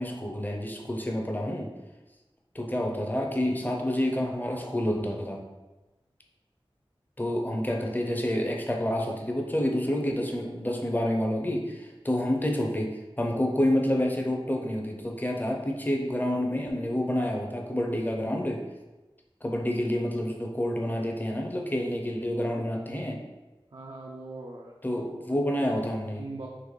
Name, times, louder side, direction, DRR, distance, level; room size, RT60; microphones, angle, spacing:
voice 1, 0.0-1.7 2.5-5.4 7.2-18.6 19.4-23.2 24.8-26.3, left 1 dB, 20° left, 0 dB, 0.6 m, -28 dB
voice 2, 23.7-24.7 25.1-25.8 26.1-26.5, right 2 dB, 55° right, -2 dB, 0.5 m, -41 dB
3.9 x 3.0 x 3.2 m, 1.1 s
wide cardioid pair, 50°, 10 cm